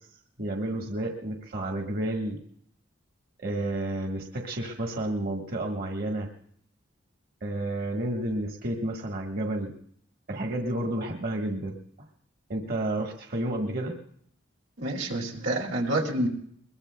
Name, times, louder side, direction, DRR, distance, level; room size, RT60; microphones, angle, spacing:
voice 1, 0.4-2.4 3.4-6.3 7.4-9.7 10.3-11.8 12.5-14.0, right 1 dB, 55° right, 2 dB, 1.4 m, -31 dB
voice 2, 14.8-16.3, right 1 dB, 90° right, -1 dB, 2.4 m, -28 dB
22.0 x 21.5 x 2.2 m, 0.65 s
head